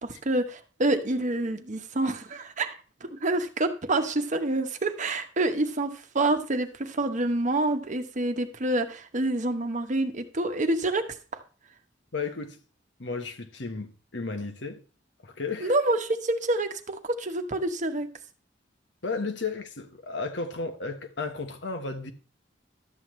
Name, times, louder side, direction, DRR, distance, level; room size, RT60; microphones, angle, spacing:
voice 1, 0.0-11.0 15.6-18.1, right 2 dB, 45° right, 1.0 m, -27 dB
voice 2, 12.1-12.6 13.0-14.8 15.2-15.7 19.0-22.1, left 4 dB, 80° left, 1.2 m, -34 dB
12.0 x 7.7 x 3.2 m
head